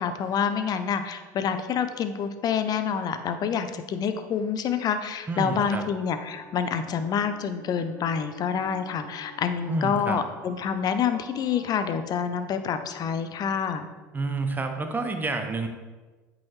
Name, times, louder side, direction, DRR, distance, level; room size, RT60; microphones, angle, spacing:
voice 1, 0.0-13.9, left 7 dB, 40° left, 9 dB, 0.6 m, -27 dB
voice 2, 5.3-5.8 9.7-10.2 14.1-15.7, right 3 dB, 20° right, 5 dB, 0.8 m, -29 dB
Wind instrument woodwind instrument, 5.5-9.9, left 4 dB, 15° left, 1.7 m, -49 dB
Wind instrument woodwind instrument 2, 7.9-12.2, right 5 dB, 65° right, 1.0 m, -50 dB
8.4 x 3.9 x 3.1 m, 1.3 s
hypercardioid pair, 70°, 10 cm